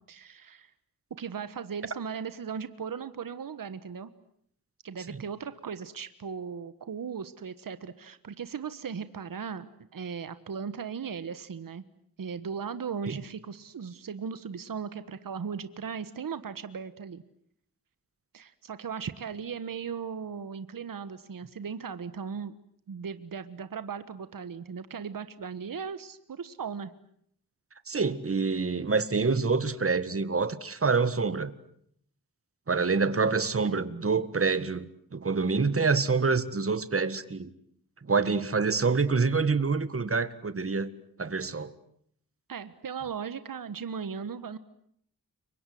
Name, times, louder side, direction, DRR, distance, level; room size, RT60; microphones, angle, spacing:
voice 1, 0.1-0.7 1.2-4.1 4.8-11.8 12.2-17.2 18.3-22.6 22.9-26.9 42.5-44.6, right 6 dB, 70° right, 12 dB, 1.4 m, -37 dB
voice 2, 27.9-31.5 32.7-37.5 38.1-40.9 41.2-41.7, right 4 dB, 40° right, 13 dB, 1.8 m, -26 dB
30.0 x 24.5 x 7.8 m, 0.68 s
wide cardioid pair, 90°, 35 cm